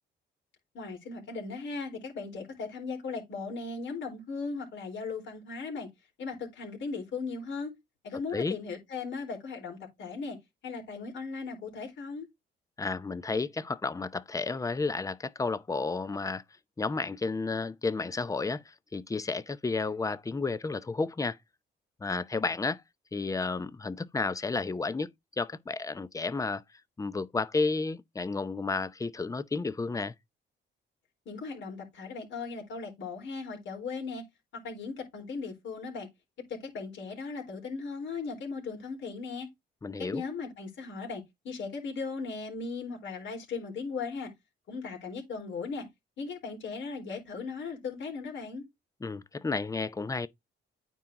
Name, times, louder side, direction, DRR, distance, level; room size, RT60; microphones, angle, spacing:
voice 1, 0.7-5.9 6.2-7.7 8.0-10.4 10.6-12.3 31.3-34.2 34.6-36.1 36.5-39.5 40.0-44.3 44.7-45.9 46.2-48.6, left 4 dB, 70° left, 4.2 m, -37 dB
voice 2, 12.8-16.4 16.8-21.4 22.0-22.8 23.1-25.1 25.4-26.6 27.0-30.1 39.8-40.2 49.0-50.3, left 3 dB, 15° left, 0.7 m, -32 dB
9.2 x 4.5 x 3.7 m
cardioid pair, 90°, 20 cm